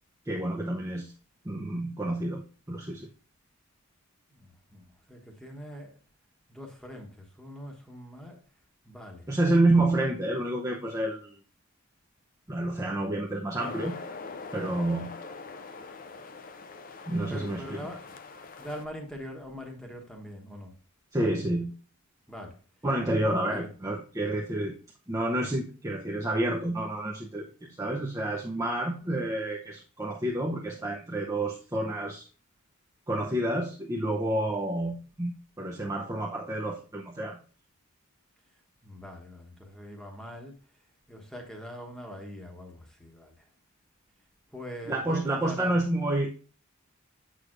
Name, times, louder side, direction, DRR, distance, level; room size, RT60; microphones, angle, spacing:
voice 1, 0.3-1.1 1.4-2.4 2.7-3.1 9.3-11.3 12.5-13.9 14.5-15.1 17.1-17.8 21.1-21.7 22.8-24.7 25.1-32.2 33.1-37.4 44.9-46.3, right 1 dB, 15° right, -3 dB, 0.6 m, -29 dB
voice 2, 4.3-5.9 6.5-8.4 8.8-9.3 17.3-18.0 18.6-20.7 22.3-22.6 23.5-23.7 38.8-40.5 41.1-43.4 44.5-45.8, equal, 5° left, 1 dB, 1.1 m, -42 dB
sound 1, 13.6-18.9, left 4 dB, 40° left, 0.5 m, -43 dB
8.1 x 6.2 x 2.5 m, 0.38 s
head